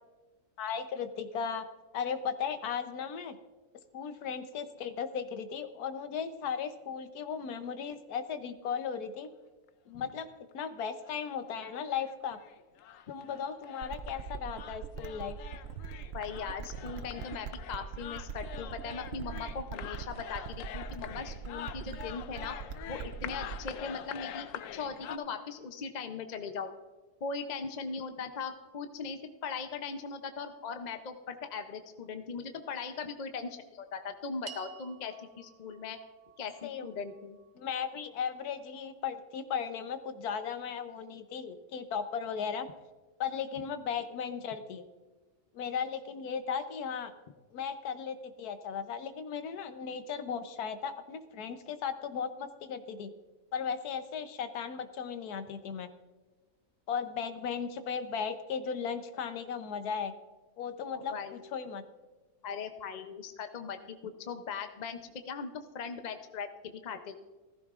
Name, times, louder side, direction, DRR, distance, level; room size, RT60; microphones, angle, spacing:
voice 1, 0.6-1.6 1.9-3.4 3.9-9.3 9.9-12.4 13.1-15.4 36.6-36.9 37.6-42.7 43.2-44.8 45.5-47.1 47.5-53.1 53.5-55.9 56.9-60.1 60.6-61.8, left 7 dB, 85° left, 10 dB, 1.3 m, -36 dB
sound 1, 9.7-9.8 10.1-10.2 10.5-10.6 11.1-11.2 11.5-25.2, left 10 dB, 70° left, 0.9 m, -45 dB
sound 2, 13.8-23.8, right 6 dB, 65° right, 0.6 m, -42 dB
voice 2, 16.1-22.6 22.9-26.7 27.2-36.0 36.4-37.4 60.9-61.4 62.4-67.2, left 5 dB, 50° left, 7 dB, 0.5 m, -39 dB
sound 3, 34.5-38.9, right 8 dB, 80° right, 1.6 m, -54 dB
15.5 x 14.5 x 2.4 m, 1.2 s
omnidirectional pair, 1.6 m